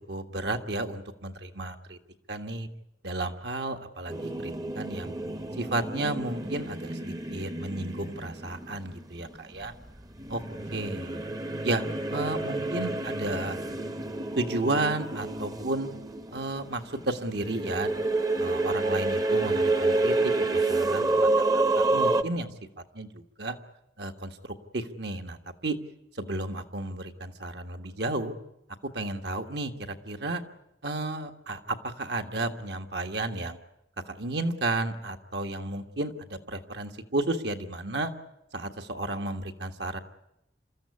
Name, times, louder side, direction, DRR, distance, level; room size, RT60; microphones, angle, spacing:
voice 1, 0.1-2.0 2.3-2.7 3.0-5.1 5.6-9.7 10.3-10.4 10.7-11.2 11.6-11.8 12.1-13.6 14.4-15.9 16.3-17.9 18.4-22.5 22.9-23.6 24.0-24.4 24.7-25.4 25.6-25.8 26.2-28.3 28.9-30.4 30.8-33.6 34.1-38.1 38.5-40.0, right 2 dB, 70° right, 6 dB, 1.7 m, -32 dB
sound 1, 4.1-9.6 10.2-22.2, right 2 dB, 20° right, 0.8 m, -29 dB
27.5 x 14.0 x 9.7 m, 0.87 s
head